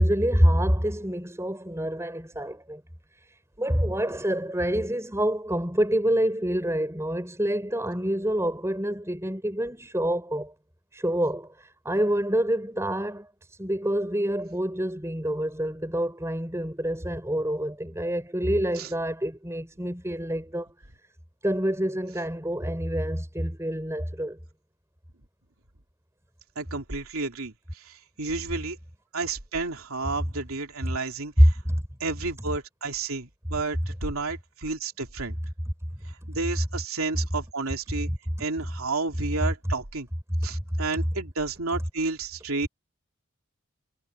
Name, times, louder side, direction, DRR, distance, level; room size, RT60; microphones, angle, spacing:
voice 1, 0.0-2.8 3.1-10.5 10.9-20.7 21.4-24.4 31.7-31.8 40.5-40.6, equal, 15° right, 6.1 m, -27 dB
voice 2, 26.6-28.8 29.1-31.6 32.0-35.4 36.3-38.1 38.4-40.1 40.4-42.7, right 3 dB, 80° right, 3.0 m, -31 dB
head